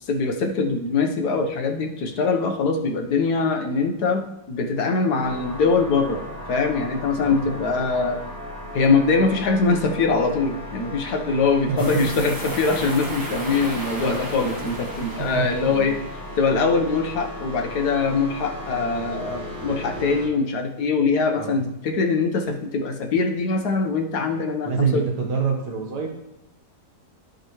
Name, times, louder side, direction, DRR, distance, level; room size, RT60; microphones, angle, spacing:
voice 1, 0.1-6.2 6.5-8.2 8.7-16.0 16.4-25.0, left 4 dB, 75° left, 3 dB, 1.5 m, -23 dB
sound 1, 5.2-20.3, left 1 dB, ahead, 2.7 m, -36 dB
voice 2, 11.7-12.1 15.0-15.9 21.4-21.6 24.6-26.1, right 5 dB, 85° right, 1 dB, 1.8 m, -26 dB
sound 2, 11.8-16.2, right 1 dB, 15° right, 1.0 m, -34 dB
14.0 x 5.2 x 3.1 m, 0.89 s
omnidirectional pair, 1.7 m